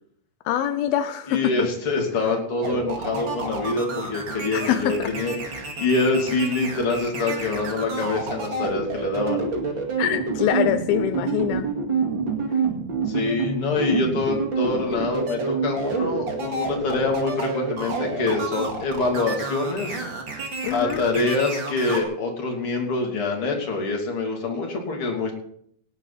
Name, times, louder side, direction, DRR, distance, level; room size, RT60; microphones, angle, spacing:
voice 1, 0.5-1.7 4.5-5.1 10.0-11.7 20.6-21.0, left 10 dB, 85° left, 9 dB, 2.6 m, -24 dB
voice 2, 1.3-9.4 13.1-20.0 20.7-25.3, left 3 dB, 40° left, 1 dB, 3.4 m, -25 dB
sound 1, 2.6-22.0, right 4 dB, 35° right, 2.4 m, -28 dB
19.0 x 10.5 x 4.1 m, 0.66 s
omnidirectional pair, 4.2 m